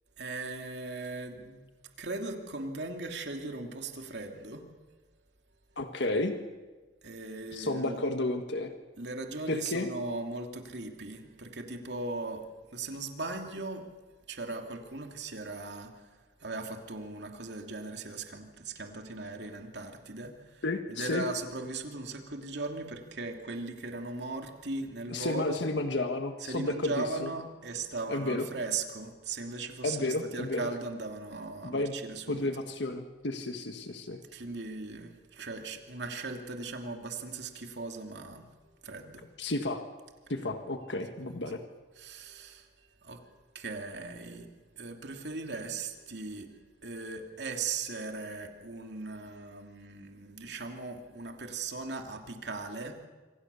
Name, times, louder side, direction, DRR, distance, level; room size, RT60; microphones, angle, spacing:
voice 1, 0.2-1.6 2.0-4.7 7.0-8.0 9.0-12.4 12.7-13.8 14.3-15.9 16.4-20.6 20.9-25.6 26.4-32.5 34.3-38.5 38.8-39.3 42.0-42.7 43.0-43.2 43.5-44.5 44.8-46.5 46.8-53.1, right 3 dB, 75° right, 3 dB, 2.9 m, -38 dB
voice 2, 5.8-6.3 7.5-8.7 9.5-9.9 20.6-21.2 25.1-27.3 28.1-28.5 29.8-30.6 31.6-31.9 32.3-34.2 39.4-39.8 40.3-41.6, left 2 dB, 85° left, 6 dB, 1.6 m, -32 dB
27.0 x 25.5 x 7.0 m, 1.3 s
head